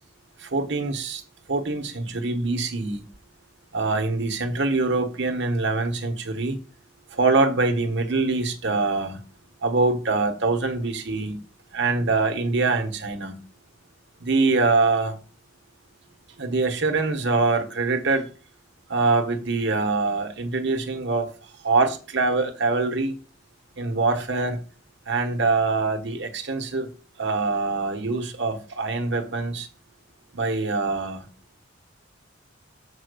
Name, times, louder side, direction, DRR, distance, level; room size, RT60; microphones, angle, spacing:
voice 1, 0.4-1.2 1.5-3.0 3.7-6.6 7.1-9.2 9.6-11.4 11.7-13.3 14.2-15.2 16.4-18.3 18.9-21.3 21.6-23.2 23.8-24.6 25.1-26.9 27.2-29.7 30.3-31.3, right 3 dB, 60° right, 1.3 m, -24 dB
7.3 x 4.5 x 6.8 m
head